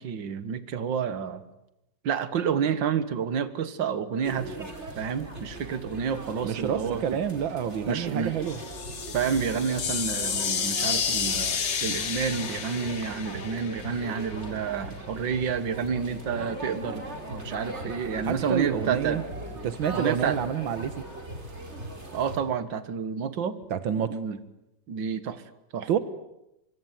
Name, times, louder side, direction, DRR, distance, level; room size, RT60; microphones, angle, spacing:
voice 1, 0.0-1.5 2.0-4.7 5.0-7.2 7.9-8.3 9.1-19.2 19.9-20.4 22.1-23.6 24.1-24.4 24.9-25.4 25.7-26.0, right 7 dB, 75° right, 13 dB, 2.2 m, -29 dB
sound 1, 4.2-22.4, right 1 dB, 35° right, 4.7 m, -39 dB
voice 2, 6.4-8.6 18.3-19.2 19.6-20.9 23.7-24.2 25.9-26.0, right 8 dB, 90° right, 13 dB, 2.0 m, -28 dB
sound 2, 8.4-14.3, left 6 dB, 75° left, 2.6 m, -31 dB
24.5 x 24.0 x 9.4 m, 0.87 s
omnidirectional pair, 2.1 m